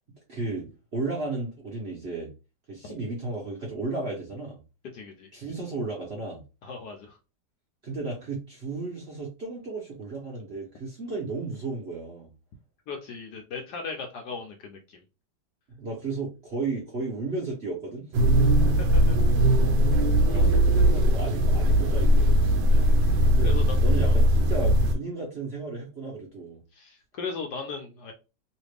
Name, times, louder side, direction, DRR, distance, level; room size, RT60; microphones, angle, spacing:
voice 1, 0.3-2.3 2.7-4.6 5.3-6.4 7.8-12.3 15.7-18.0 20.2-22.4 23.3-23.5 23.8-26.6, right 3 dB, 45° right, -3 dB, 0.8 m, -34 dB
voice 2, 4.9-5.3 6.6-7.2 12.9-15.0 18.8-19.2 22.7-22.9 23.4-23.8 24.0-24.2 26.7-28.1, left 5 dB, 70° left, 3 dB, 1.0 m, -37 dB
sound 1, 18.1-25.0, equal, 70° right, 1.1 m, -20 dB
3.1 x 2.4 x 3.3 m, 0.30 s
omnidirectional pair, 2.2 m